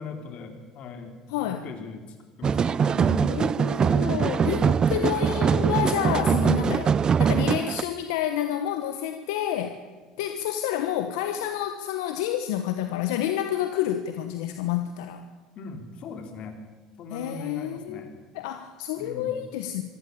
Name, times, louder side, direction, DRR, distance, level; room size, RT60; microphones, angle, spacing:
voice 1, 0.0-3.1 4.1-4.9 15.6-16.6 17.0-18.2 19.0-19.4, left 4 dB, 55° left, 6 dB, 4.0 m, -40 dB
voice 2, 1.3-1.7 3.0-6.9 7.2-9.8 10.2-15.2 17.1-19.8, left 11 dB, 85° left, 8 dB, 1.3 m, -29 dB
sound 1, 2.4-7.8, right 7 dB, 35° right, 0.6 m, -22 dB
25.0 x 14.0 x 8.6 m, 1.4 s
supercardioid pair, 85°, 2 cm